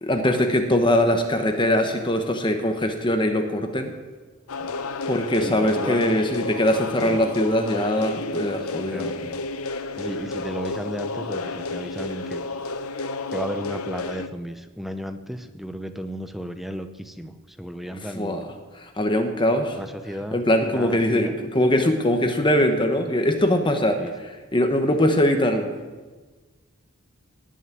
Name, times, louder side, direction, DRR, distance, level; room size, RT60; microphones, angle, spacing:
voice 1, 0.0-3.9 5.1-9.1 17.9-18.4 18.8-19.8 20.3-25.7, left 1 dB, 20° left, 5 dB, 1.1 m, -22 dB
sound 1, 4.5-14.3, left 3 dB, 85° left, 0.9 m, -31 dB
voice 2, 5.4-6.0 7.0-7.2 8.9-9.4 10.0-12.5 13.3-18.4 19.7-20.4 20.7-21.4 24.0-24.1 24.9-25.0, equal, ahead, 8 dB, 0.7 m, -34 dB
18.5 x 6.4 x 9.1 m, 1.3 s
head